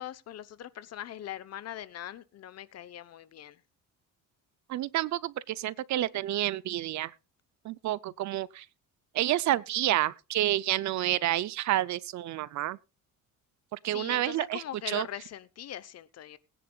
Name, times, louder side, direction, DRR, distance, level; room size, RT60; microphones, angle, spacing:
voice 1, 0.0-3.6 13.9-16.4, left 11 dB, 50° left, 0.9 m, -41 dB
voice 2, 4.7-7.1 7.6-8.7 9.1-12.8 13.7-15.1, right 14 dB, 60° right, 0.6 m, -29 dB
20.5 x 10.0 x 2.4 m
cardioid pair, 135°, 32 cm